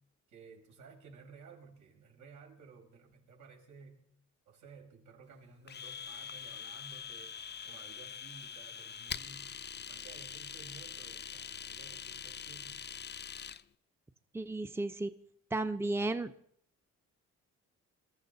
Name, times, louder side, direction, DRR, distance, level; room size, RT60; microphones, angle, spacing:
voice 1, 0.3-4.0 4.5-7.4 7.6-12.9, right 5 dB, 75° right, 0 dB, 5.6 m, -55 dB
Domestic sounds home sounds, 5.7-13.6, left 7 dB, 35° left, 0.7 m, -44 dB
voice 2, 14.3-15.1 15.5-16.3, right 2 dB, 10° right, 10 dB, 0.9 m, -33 dB
22.0 x 13.5 x 4.1 m, 0.65 s
cardioid pair, 90°, 30 cm